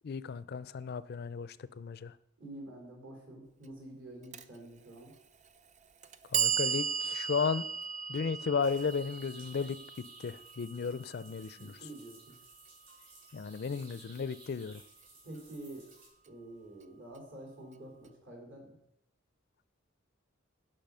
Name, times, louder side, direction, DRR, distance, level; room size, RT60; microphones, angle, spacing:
voice 1, 0.0-2.1 6.3-7.6 8.1-11.7 13.3-14.8, left 5 dB, 50° left, 16 dB, 0.4 m, -34 dB
voice 2, 2.4-5.1 11.5-12.3 15.2-15.9 16.3-18.8, right 1 dB, 65° right, 0 dB, 3.8 m, -48 dB
Clock, 4.3-4.4 5.4-5.5 6.0-12.1, right 8 dB, 35° right, 0.4 m, -36 dB
sound 1, 8.6-16.1, right 3 dB, 85° right, 3.9 m, -57 dB
10.5 x 5.5 x 5.5 m, 0.78 s
head